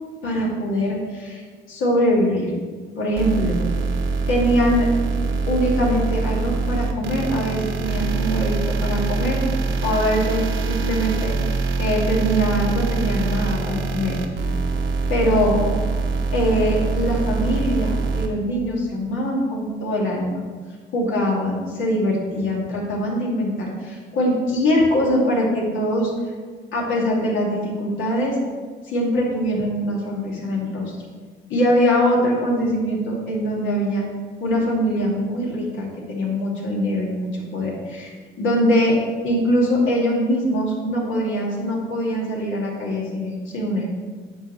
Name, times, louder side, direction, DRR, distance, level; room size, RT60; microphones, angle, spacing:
voice 1, 0.2-2.5 3.0-3.6 4.3-4.9 5.5-9.4 9.8-14.2 15.1-15.6 16.3-20.4 20.9-26.1 26.7-28.4 28.9-30.8 31.5-34.0 34.4-39.0 39.2-44.0, equal, 80° left, -3 dB, 2.4 m, -22 dB
sound 1, 3.2-18.3, right 4 dB, 80° right, 1.0 m, -24 dB
9.8 x 6.5 x 3.2 m, 1.5 s
cardioid pair, 90°, 20 cm